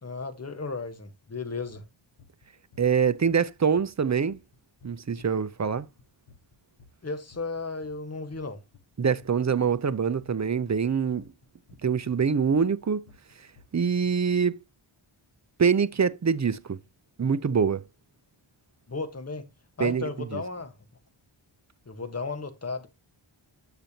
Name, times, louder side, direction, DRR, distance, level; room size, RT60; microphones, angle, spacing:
voice 1, 0.0-1.8 7.0-8.6 18.9-19.5 19.8-20.7 21.9-22.9, left 4 dB, 30° left, 1.2 m, -34 dB
sound 1, 1.7-1.8 2.2-2.5 2.7-8.9 9.2-14.1, left 4 dB, 80° left, 1.2 m, -55 dB
voice 2, 2.8-4.4 4.8-5.9 9.0-11.2 11.8-13.0 13.7-14.6 15.6-16.8 17.2-17.8 19.8-20.4, right 6 dB, 35° right, 0.5 m, -25 dB
8.9 x 6.8 x 2.8 m
wide cardioid pair, 80°, 50 cm